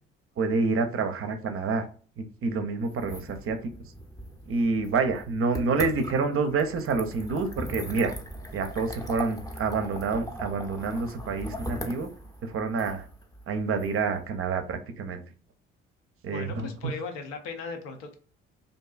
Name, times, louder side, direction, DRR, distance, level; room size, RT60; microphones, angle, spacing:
voice 1, 0.4-1.8 2.2-3.7 4.5-8.2 8.5-12.1 12.4-13.1 13.5-15.2 16.2-16.9, right 4 dB, 45° right, 8 dB, 0.5 m, -28 dB
sound 1, 2.9-14.8, equal, 10° left, 0.6 m, -40 dB
voice 2, 16.3-18.1, left 4 dB, 80° left, 5 dB, 0.6 m, -37 dB
2.5 x 2.2 x 2.3 m, 0.39 s
hypercardioid pair, 55°, 31 cm